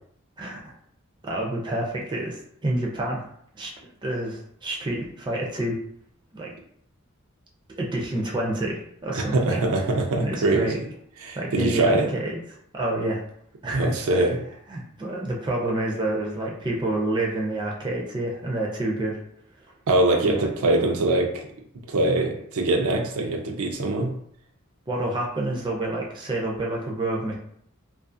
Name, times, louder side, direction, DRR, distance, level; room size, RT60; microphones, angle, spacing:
voice 1, 0.4-0.7 1.2-3.3 3.6-3.7 4.0-5.8 6.3-6.5 7.8-9.6 10.2-10.8 11.4-12.4 12.7-13.2 13.6-14.2 14.7-19.2 20.3-20.5 24.9-27.3, right 1 dB, 20° right, -2 dB, 0.4 m, -28 dB
voice 2, 9.1-10.8 11.2-12.1 13.7-14.4 19.9-21.5 21.9-24.1, right 2 dB, 75° right, 2 dB, 0.5 m, -23 dB
2.4 x 2.4 x 2.5 m, 0.67 s
head